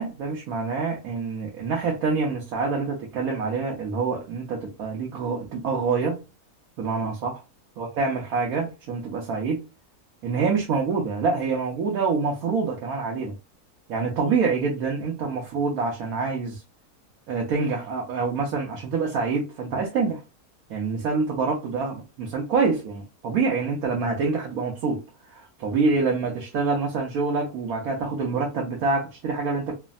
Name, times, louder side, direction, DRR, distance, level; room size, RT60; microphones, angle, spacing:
voice 1, 0.0-6.2 6.8-7.4 7.8-9.6 10.2-13.3 13.9-16.6 17.3-20.2 20.7-25.0 25.3-29.8, right 4 dB, 70° right, 1.1 m, -26 dB
3.1 x 2.1 x 2.4 m
omnidirectional pair, 1.6 m